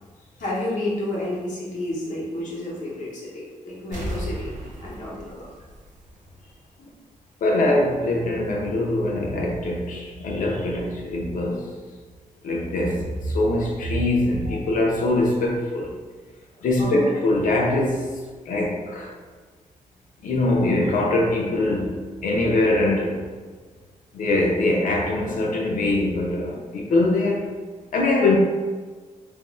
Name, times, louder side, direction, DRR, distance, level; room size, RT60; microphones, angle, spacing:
voice 1, 0.4-4.5 4.8-5.5 6.8-6.9 12.8-12.9 14.5-14.6 16.8-17.1, left 1 dB, 75° left, -6 dB, 0.9 m, -30 dB
sound 1, 3.9-6.5 6.9-7.0, equal, 75° right, 0.6 m, -34 dB
voice 2, 7.4-11.7 12.4-16.0 16.6-18.1 18.5-19.1 20.2-23.2 24.1-27.6 27.9-28.4, left 2 dB, 90° left, -1 dB, 0.6 m, -23 dB
2.5 x 2.0 x 3.6 m, 1.4 s
wide cardioid pair, 165°, 13 cm